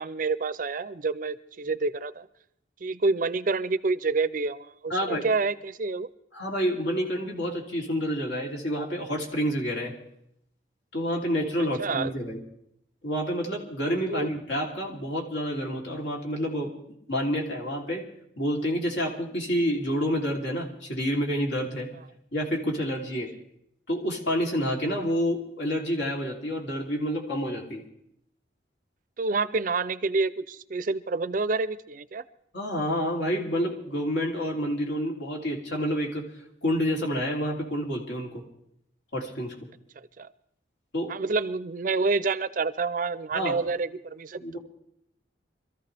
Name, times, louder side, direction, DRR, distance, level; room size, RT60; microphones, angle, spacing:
voice 1, 0.0-2.3 2.8-6.1 11.8-12.1 14.1-14.3 29.2-32.2 40.0-40.3 41.1-44.6, right 3 dB, 45° right, 15 dB, 0.5 m, -28 dB
voice 2, 4.9-5.2 6.3-9.9 10.9-12.4 13.0-16.7 17.1-18.0 18.4-21.9 22.3-23.3 23.9-27.8 32.5-36.2 36.6-38.4 39.1-39.5 40.9-41.1 43.3-43.6 44.4-44.6, equal, 75° left, -1 dB, 3.2 m, -28 dB
24.5 x 14.0 x 3.4 m, 0.74 s
head